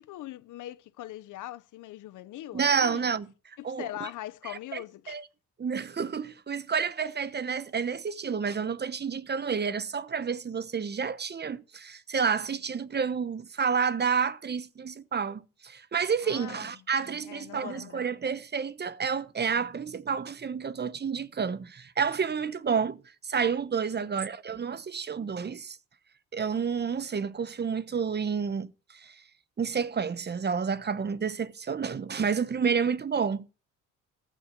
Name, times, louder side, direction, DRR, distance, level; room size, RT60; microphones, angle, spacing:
voice 1, 0.0-3.2 3.6-5.2 16.2-16.7 17.2-18.0, left 14 dB, 80° left, 0.9 m, -41 dB
voice 2, 2.5-3.3 3.6-3.9 5.1-5.2 5.6-25.8 26.3-28.7 28.9-29.1 29.6-33.5, right 6 dB, 35° right, 1.0 m, -30 dB
14.5 x 6.3 x 6.9 m
cardioid pair, 90°, 30 cm